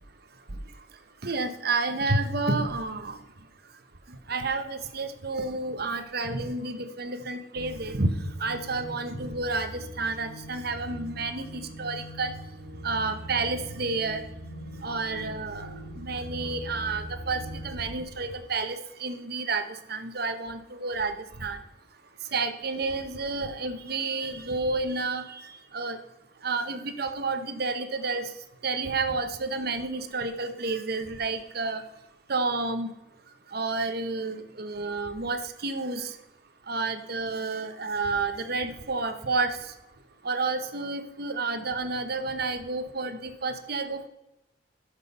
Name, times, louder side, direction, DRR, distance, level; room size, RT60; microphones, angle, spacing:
voice 1, 1.2-3.2 4.3-8.1 8.4-12.3 12.8-14.2 14.8-15.7 16.0-19.6 19.9-21.1 21.4-21.6 22.3-25.4 25.7-26.0 26.4-28.2 28.6-31.8 32.3-32.9 33.5-36.1 36.7-39.6 40.2-44.1, right 3 dB, 55° right, 8 dB, 1.0 m, -30 dB
sound 1, 7.6-18.0, equal, 85° right, 1.2 m, -41 dB
12.0 x 6.4 x 5.4 m, 0.92 s
head